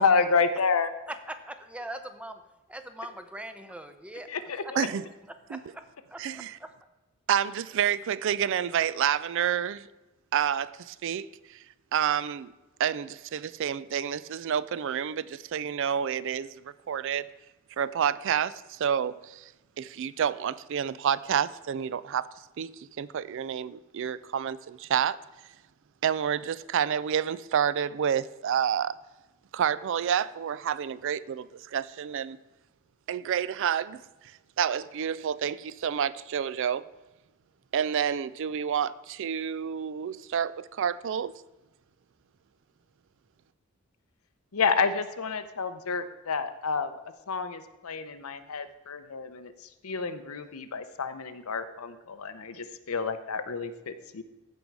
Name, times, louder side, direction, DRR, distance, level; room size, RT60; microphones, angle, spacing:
voice 1, 0.0-0.9 4.3-4.9 44.5-46.9 47.3-49.5 49.8-54.2, left 5 dB, 80° left, 0.7 m, -29 dB
voice 2, 1.1-2.4 2.7-4.3 4.6-4.7 5.3-6.7, right 1 dB, 5° right, 0.6 m, -41 dB
voice 3, 6.2-6.5 7.3-9.9 10.3-11.6 11.9-12.5 12.8-16.6 16.9-17.3 17.8-19.5 19.8-22.3 22.6-25.2 26.0-28.9 29.5-32.4 33.1-34.0 34.6-36.8 37.7-41.3, right 8 dB, 60° right, 0.4 m, -29 dB
15.0 x 5.3 x 4.7 m
head